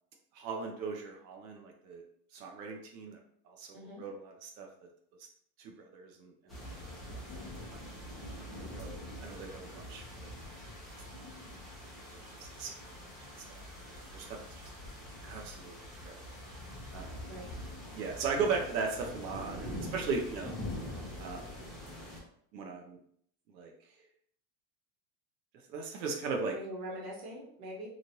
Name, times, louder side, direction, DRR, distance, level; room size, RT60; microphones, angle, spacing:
voice 1, 0.4-2.0 2.3-3.2 3.5-4.7 5.6-6.3 7.7-7.8 8.6-10.3 12.1-13.0 13.5-14.4 15.2-16.4 16.9-17.1 18.0-20.5 21.2-21.5 22.5-23.0 23.5-23.7 25.7-26.6, right 4 dB, 85° right, 2 dB, 0.8 m, -38 dB
voice 2, 3.7-4.0 17.3-17.5 26.5-27.9, equal, 35° right, -3 dB, 1.0 m, -43 dB
sound 1, 6.5-22.2, left 1 dB, ahead, 0.5 m, -44 dB
3.1 x 2.5 x 2.7 m, 0.67 s
supercardioid pair, 140°, 50 cm